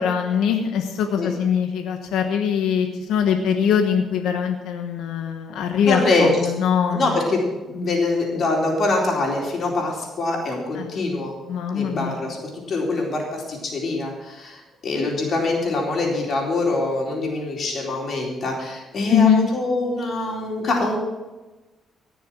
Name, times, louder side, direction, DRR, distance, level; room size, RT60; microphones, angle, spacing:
voice 1, 0.0-7.1 10.8-10.9 11.5-12.2 19.1-19.5, left 7 dB, 85° left, 4 dB, 1.2 m, -22 dB
voice 2, 5.9-6.5 6.9-11.3 11.7-21.0, left 2 dB, 55° left, -1 dB, 4.0 m, -24 dB
17.0 x 7.0 x 6.2 m, 1.1 s
cardioid pair, 90°, 0 cm